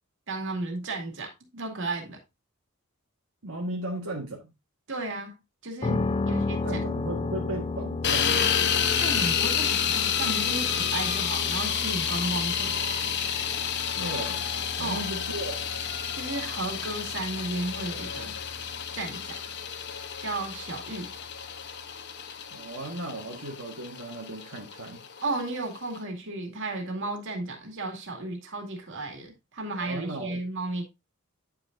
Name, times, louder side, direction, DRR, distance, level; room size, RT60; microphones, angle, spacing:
voice 1, 0.3-2.2 4.9-5.3 5.6-6.8 9.0-13.2 14.8-15.1 16.1-18.4 18.9-19.4 20.2-21.1 25.2-30.9, right 2 dB, 65° right, 2.3 m, -34 dB
voice 2, 3.4-4.4 6.1-8.6 14.0-14.4 14.8-15.7 22.5-25.0 29.8-30.4, right 1 dB, 85° right, 1.5 m, -36 dB
sound 1, 5.8-21.7, left 3 dB, 25° left, 0.4 m, -35 dB
sound 2, 8.0-26.0, left 8 dB, 55° left, 0.9 m, -30 dB
9.7 x 6.1 x 2.6 m
head